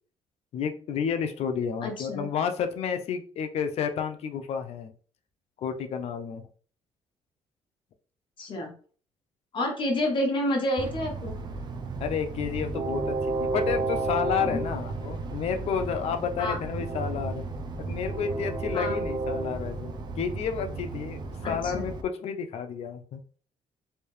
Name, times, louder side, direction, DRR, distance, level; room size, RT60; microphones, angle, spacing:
voice 1, 0.5-4.9 5.6-6.4 12.0-17.4 17.8-21.2 21.5-23.2, left 7 dB, 65° left, 7 dB, 0.6 m, -31 dB
voice 2, 1.8-2.3 8.4-8.7 9.5-11.3 14.4-14.6 16.4-16.6 18.7-19.0 21.4-21.8, left 1 dB, 45° left, 1 dB, 1.1 m, -29 dB
Train, 10.8-22.0, right 3 dB, 40° right, 0.6 m, -32 dB
3.3 x 2.7 x 3.2 m, 0.43 s
cardioid pair, 110°, 12 cm